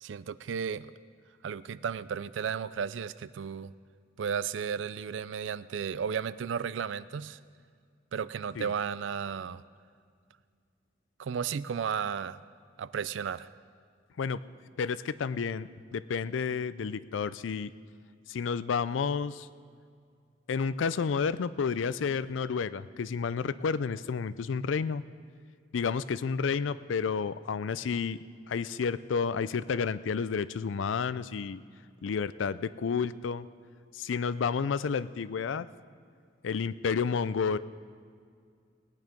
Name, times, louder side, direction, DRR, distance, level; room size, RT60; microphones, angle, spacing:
voice 1, 0.0-0.9 1.4-3.7 4.2-7.4 8.1-9.6 11.2-12.4 12.8-13.5, right 7 dB, 80° right, 17 dB, 0.4 m, -34 dB
voice 2, 14.8-17.7 18.3-19.5 20.5-25.0 25.7-31.6 32.0-33.5 33.9-35.7 36.4-37.6, left 5 dB, 85° left, 16 dB, 0.4 m, -31 dB
18.5 x 9.6 x 5.2 m, 2.2 s
head